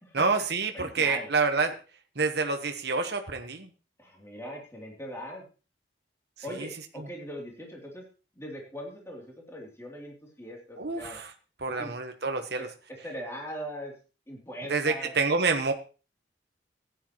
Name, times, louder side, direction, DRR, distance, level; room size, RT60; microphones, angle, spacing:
voice 1, 0.1-1.8 2.2-3.7 6.6-6.7 10.8-11.3 11.6-12.7 14.7-15.7, right 4 dB, 60° right, 5 dB, 1.2 m, -27 dB
voice 2, 0.7-1.3 4.0-5.4 6.4-8.0 8.3-11.2 11.7-11.9 12.6-13.9 14.3-15.1, equal, 15° left, -1 dB, 3.1 m, -40 dB
16.0 x 10.0 x 3.1 m, 0.33 s
head